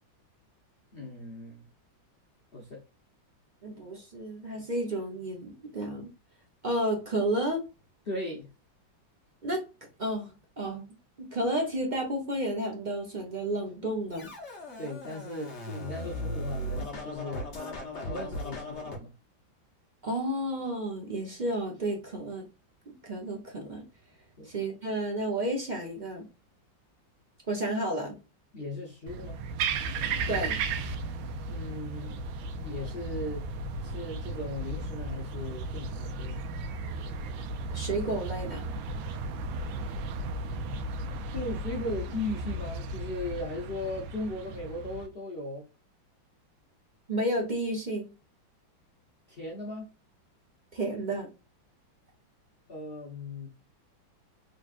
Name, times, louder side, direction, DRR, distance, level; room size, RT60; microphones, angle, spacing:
voice 1, 0.9-1.6 2.5-2.8 8.1-8.5 14.8-17.5 18.0-19.1 24.4-24.5 28.5-29.4 31.5-32.2 32.5-33.5 33.8-36.4 39.8-39.9 41.3-45.7 49.3-49.9 52.7-53.5, left 2 dB, 75° left, 0.5 m, -37 dB
voice 2, 3.6-6.1 6.6-7.6 9.4-9.7 10.0-14.3 20.0-22.5 22.9-23.8 24.4-26.3 27.5-28.2 30.3-30.6 37.7-38.7 47.1-48.1 50.7-51.3, right 1 dB, 45° right, 0.5 m, -31 dB
Scratching (performance technique), 14.1-19.0, left 1 dB, 45° left, 1.1 m, -37 dB
sound 1, 29.1-45.1, right 3 dB, 85° right, 1.4 m, -35 dB
3.9 x 3.2 x 2.4 m
omnidirectional pair, 2.1 m